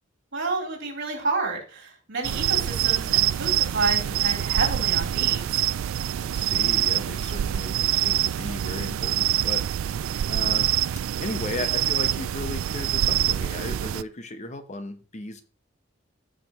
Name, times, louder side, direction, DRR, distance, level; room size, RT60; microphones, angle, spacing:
voice 1, 0.3-5.6, right 3 dB, 60° right, -1 dB, 3.5 m, -30 dB
sound 1, 2.2-14.0, right 12 dB, 85° right, 0.3 m, -25 dB
voice 2, 6.1-10.8 11.2-15.4, left 2 dB, 35° left, 9 dB, 0.9 m, -36 dB
15.0 x 5.1 x 3.0 m, 0.38 s
head